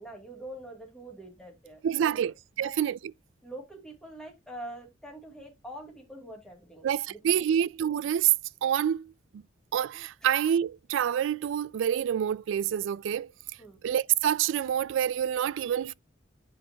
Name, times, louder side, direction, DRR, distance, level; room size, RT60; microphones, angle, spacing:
voice 1, 0.0-2.2 2.6-2.7 3.4-7.2 10.2-10.3 13.6-13.8, right 1 dB, 5° left, 2.5 m, -44 dB
voice 2, 1.8-3.0 6.8-8.3 8.6-9.4 9.7-13.3 13.8-15.9, right 9 dB, 85° right, 0.3 m, -27 dB
9.8 x 4.9 x 2.8 m
head